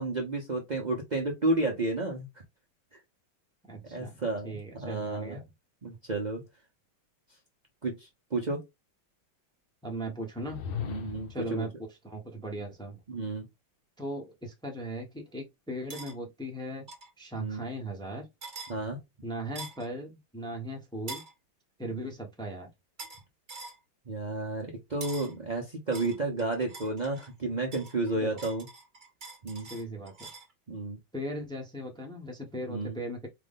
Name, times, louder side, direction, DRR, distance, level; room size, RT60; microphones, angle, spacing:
voice 1, 0.0-2.3 3.9-5.4 5.8-6.4 7.8-8.6 10.8-11.7 13.1-13.5 17.4-17.6 18.7-19.0 21.9-22.1 24.1-28.6 29.4-29.7 30.7-31.0 32.7-33.0, right 2 dB, 80° right, 0.4 m, -32 dB
voice 2, 3.7-5.5 9.8-10.6 11.3-13.0 14.0-16.9 17.2-18.3 19.2-21.2 21.8-22.7 28.1-28.4 29.7-30.3 31.1-33.3, right 1 dB, 5° left, 0.5 m, -38 dB
sound 1, 10.3-11.5, left 7 dB, 75° left, 1.4 m, -37 dB
sound 2, 15.9-16.1 16.9-17.1 18.4-18.7 19.6-19.9 21.1-21.3 23.0-23.2 23.5-23.8 25.0-25.3 25.9-27.3 27.7-30.5, right 3 dB, 35° right, 0.9 m, -44 dB
4.6 x 2.5 x 3.6 m
omnidirectional pair, 2.2 m